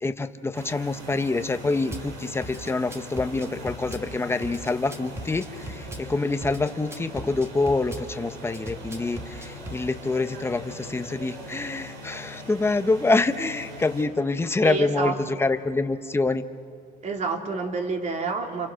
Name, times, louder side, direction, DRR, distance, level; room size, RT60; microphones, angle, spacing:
voice 1, 0.0-16.4, left 3 dB, 15° left, 9 dB, 1.0 m, -26 dB
sound 1, 0.5-14.0, left 1 dB, 90° right, 5.3 m, -42 dB
Drum kit / Bass drum, 1.9-2.1 2.4-4.1 4.4-6.1 6.4-8.1 8.5-9.8, right 1 dB, 15° right, 1.8 m, -38 dB
voice 2, 14.6-15.2 17.0-18.7, right 4 dB, 45° right, 3 dB, 3.1 m, -28 dB
30.0 x 27.0 x 6.4 m, 2.5 s
cardioid pair, 110°, 17 cm